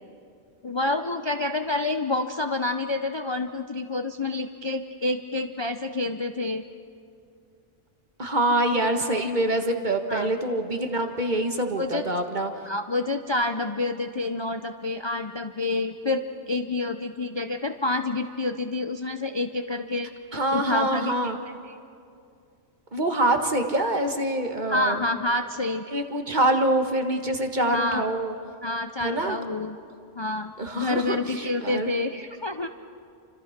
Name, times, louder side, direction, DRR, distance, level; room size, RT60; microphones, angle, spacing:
voice 1, 0.6-6.6 10.1-10.3 11.8-12.0 12.6-20.1 20.5-21.3 21.6-21.8 24.7-25.9 27.7-28.0 28.6-29.8 30.2-32.7, left 2 dB, 30° left, 7 dB, 0.6 m, -28 dB
voice 2, 8.2-12.5 20.3-21.4 22.9-25.0 25.9-28.3 29.0-29.4 30.6-31.9, right 1 dB, 40° right, 5 dB, 1.8 m, -25 dB
29.5 x 25.5 x 5.9 m, 2.4 s
omnidirectional pair, 1.3 m